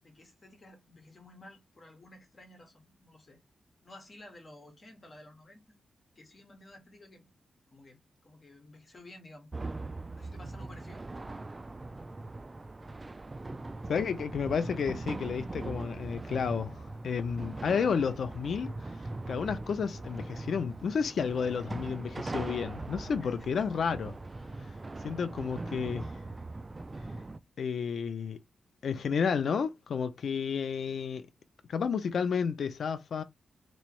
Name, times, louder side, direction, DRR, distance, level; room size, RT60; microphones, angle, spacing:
voice 1, 0.0-3.4 3.8-5.8 6.1-7.3 7.7-9.5 10.1-11.1 23.2-23.7 24.7-24.9, left 1 dB, 35° left, 1.7 m, -53 dB
sound 1, 9.5-27.4, right 2 dB, 25° right, 0.3 m, -41 dB
voice 2, 13.9-18.9 19.3-24.1 25.0-26.1 27.6-28.4 28.8-31.3 31.7-33.2, left 6 dB, 70° left, 0.5 m, -31 dB
3.5 x 3.1 x 3.0 m
cardioid pair, 95°, 0 cm